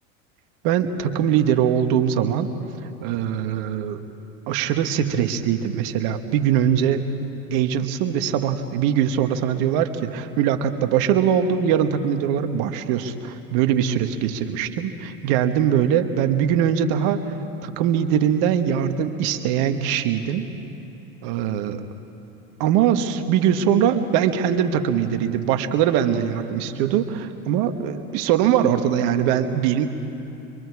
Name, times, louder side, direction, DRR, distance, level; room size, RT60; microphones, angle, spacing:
voice 1, 0.6-2.5 3.0-4.0 4.5-7.1 7.5-17.2 17.6-20.4 21.2-21.8 22.6-29.9, right 9 dB, 60° right, 8 dB, 1.5 m, -22 dB
25.5 x 22.5 x 4.8 m, 2.9 s
hypercardioid pair, 95°, 42 cm